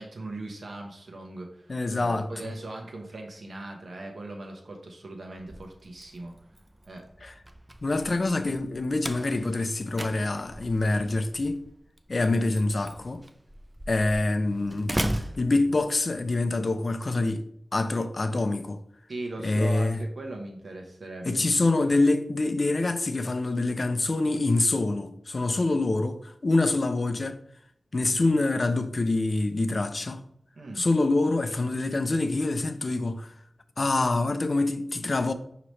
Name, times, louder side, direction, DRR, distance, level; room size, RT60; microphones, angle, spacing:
voice 1, 0.0-6.3 6.8-7.1 19.1-21.4 30.5-30.9, right 2 dB, 70° right, 0.9 m, -39 dB
voice 2, 1.7-2.3 7.2-7.3 7.8-11.6 12.1-13.2 13.9-15.0 15.4-17.4 17.7-18.8 19.4-20.0 21.3-27.4 27.9-30.2 30.8-33.3 33.8-35.3, left 2 dB, 55° left, 0.4 m, -25 dB
Slam, 5.3-16.3, right 1 dB, 20° right, 0.4 m, -38 dB
5.1 x 2.9 x 3.1 m
wide cardioid pair, 60°, 0 cm